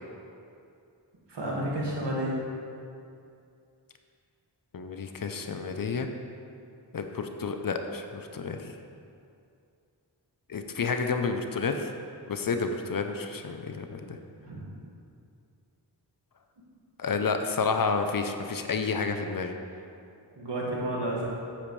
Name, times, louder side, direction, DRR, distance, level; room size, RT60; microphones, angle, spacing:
voice 1, 1.3-2.4 14.4-14.6 20.4-21.2, right 1 dB, 65° right, -5 dB, 2.1 m, -31 dB
voice 2, 4.7-6.1 6.9-8.7 10.5-11.9 12.3-14.2 17.0-19.5, left 4 dB, 50° left, 6 dB, 0.7 m, -30 dB
8.6 x 7.9 x 3.3 m, 2.5 s
cardioid pair, 50°, 45 cm